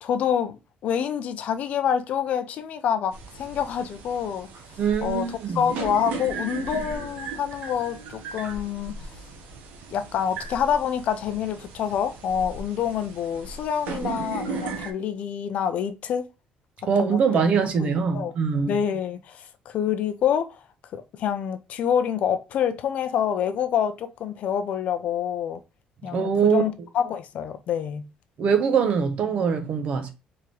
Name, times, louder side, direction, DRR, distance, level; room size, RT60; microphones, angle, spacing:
voice 1, 0.0-4.5 5.0-8.9 9.9-16.3 17.0-17.5 17.8-18.3 18.7-20.6 20.9-25.6 26.0-28.1, left 8 dB, 55° left, 0.6 m, -27 dB
sound 1, 3.1-14.9, right 4 dB, 80° right, 1.2 m, -37 dB
voice 2, 4.8-5.7 16.9-18.7 26.0-26.6 28.4-30.1, right 6 dB, 45° right, 0.9 m, -23 dB
4.7 x 3.7 x 3.1 m
cardioid pair, 165°, 3 cm